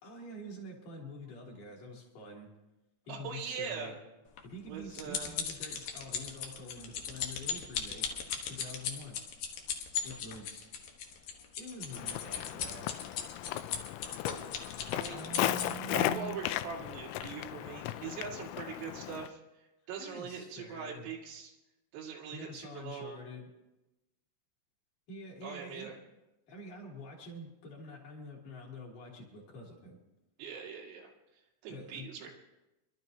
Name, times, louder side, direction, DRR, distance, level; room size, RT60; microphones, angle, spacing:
voice 1, 0.0-2.5 3.1-3.9 4.4-8.1 8.5-9.2 10.0-10.7 11.6-12.9 15.1-16.4 20.0-21.1 22.3-23.5 25.1-25.9 26.5-30.0 31.7-32.1, equal, 45° left, -2 dB, 3.8 m, -46 dB
voice 2, 3.1-3.9 4.7-5.4 14.9-15.3 15.9-21.5 21.9-23.2 25.4-26.0 30.4-31.1 31.6-32.3, right 6 dB, 90° right, -1 dB, 4.8 m, -42 dB
sound 1, 4.4-16.0 16.7-16.9 17.2-17.3, left 7 dB, 75° left, 2.1 m, -37 dB
Walk footsteps, 11.9-19.3, left 14 dB, 90° left, 3.3 m, -36 dB
26.5 x 12.5 x 2.8 m, 0.98 s
omnidirectional pair, 5.9 m